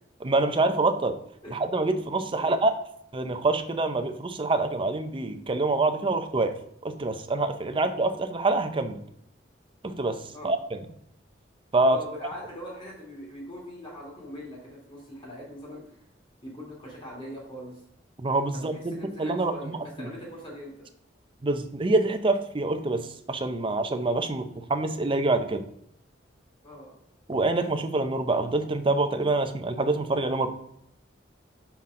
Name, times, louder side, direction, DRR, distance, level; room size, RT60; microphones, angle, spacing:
voice 1, 0.2-1.2 1.5-2.7 3.1-6.6 6.8-9.0 9.8-10.8 11.7-12.0 18.2-20.1 21.4-25.6 27.3-30.5, right 2 dB, 30° right, 8 dB, 0.6 m, -26 dB
voice 2, 11.9-16.0 16.4-17.8 18.5-20.9 26.6-26.9, equal, 30° left, -3 dB, 2.8 m, -41 dB
5.8 x 5.8 x 3.7 m, 0.73 s
head